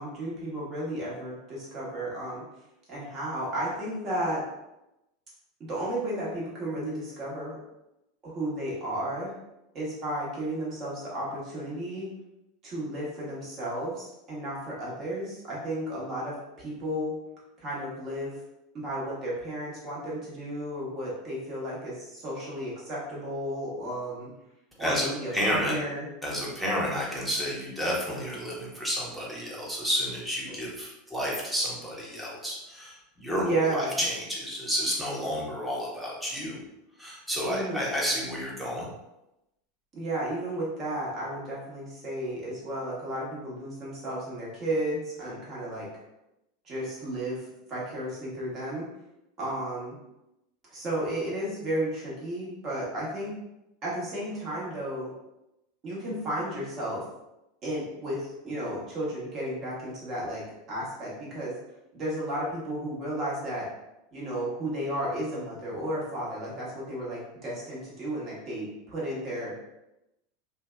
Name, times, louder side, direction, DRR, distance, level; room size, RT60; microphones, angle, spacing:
voice 1, 0.0-2.4 2.9-4.4 5.7-7.6 8.2-9.3 9.7-12.1 12.6-17.1 17.6-18.4 18.7-24.3 24.8-26.1 33.3-34.0 37.5-37.9 39.9-45.9 46.6-48.9 49.4-49.9 50.7-53.3 53.8-55.1 55.8-57.0 57.6-60.4 60.7-61.5 61.9-63.7 64.1-69.5, right 1 dB, 40° right, -6 dB, 1.2 m, -33 dB
voice 2, 24.8-25.8 26.2-36.6 37.0-38.9, equal, 5° right, -5 dB, 0.9 m, -31 dB
2.6 x 2.3 x 2.2 m, 0.91 s
hypercardioid pair, 85°, 0 cm